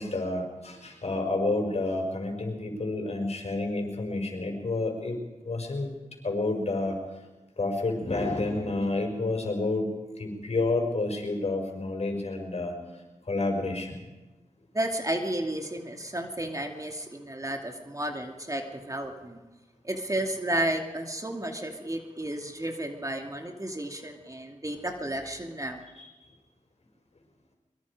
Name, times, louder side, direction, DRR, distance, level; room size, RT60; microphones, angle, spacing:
voice 1, 0.0-6.0 6.2-7.0 7.6-9.9 10.2-12.7 13.3-14.0 26.0-26.1, left 2 dB, 55° left, 2 dB, 5.8 m, -29 dB
voice 2, 14.7-19.4 19.8-25.8, right 1 dB, 25° right, 3 dB, 2.6 m, -32 dB
23.0 x 23.0 x 5.0 m, 1.1 s
cardioid pair, 50°, 13 cm